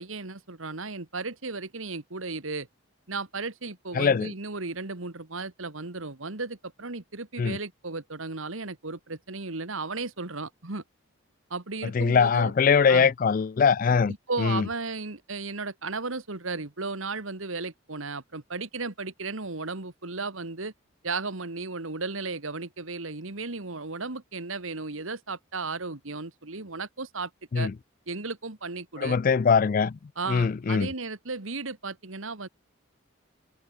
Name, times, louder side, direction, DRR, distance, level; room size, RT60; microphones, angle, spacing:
voice 1, 0.0-2.7 3.1-10.8 11.5-12.5 12.9-13.1 14.1-20.7 21.0-27.7 28.1-29.2 30.2-32.5, right 3 dB, 80° right, 2.0 m, -35 dB
voice 2, 3.9-4.3 7.4-7.6 11.9-14.1 14.4-14.6 27.5-27.7 29.0-30.0 30.3-30.9, left 6 dB, 40° left, 0.3 m, -22 dB
head